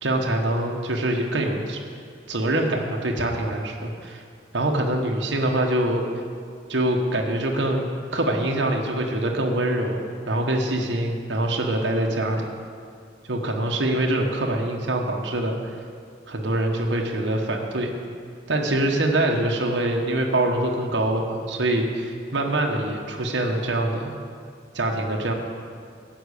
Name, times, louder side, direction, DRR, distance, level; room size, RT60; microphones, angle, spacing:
voice 1, 0.0-1.8 2.3-4.2 4.5-6.0 6.7-12.4 13.3-15.6 16.3-17.9 18.5-24.1 24.7-25.3, right 1 dB, 65° right, 1 dB, 1.2 m, -24 dB
11.5 x 6.0 x 8.4 m, 2.3 s
head